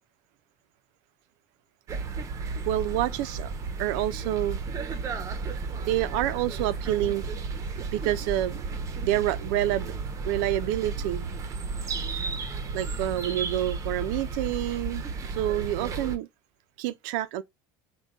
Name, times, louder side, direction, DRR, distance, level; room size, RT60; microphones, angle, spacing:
sound 1, 1.9-16.2, right 4 dB, 30° right, 0.6 m, -33 dB
voice 1, 2.7-3.5 3.8-4.6 5.9-7.2 7.9-8.6 9.0-9.9 10.2-11.3 12.7-15.0 15.3-16.3 16.8-17.4, right 13 dB, 75° right, 0.4 m, -28 dB
3.6 x 2.2 x 3.9 m
supercardioid pair, 125°, 10 cm